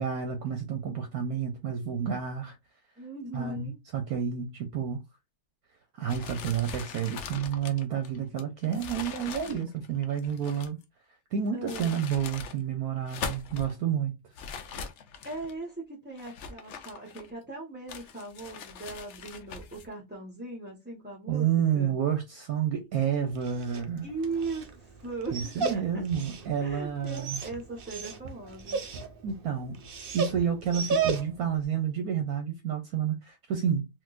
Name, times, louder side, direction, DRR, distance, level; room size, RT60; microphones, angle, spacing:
voice 1, 0.0-2.5 3.3-5.0 6.0-10.8 11.3-14.1 21.3-24.1 25.3-27.4 29.2-29.8 30.1-33.9, right 8 dB, 70° right, 1.1 m, -30 dB
voice 2, 3.0-3.8 9.4-9.6 11.5-12.0 15.2-21.9 24.0-25.8 26.6-28.8, right 3 dB, 10° right, 0.5 m, -39 dB
sound 1, 6.1-10.8 11.5-12.6 13.0-13.7 14.3-15.5 16.2-17.5 17.9-19.9, left 6 dB, 70° left, 0.6 m, -41 dB
Dog, 23.3-31.6, right 5 dB, 85° right, 0.4 m, -35 dB
3.8 x 2.6 x 2.3 m
omnidirectional pair, 1.8 m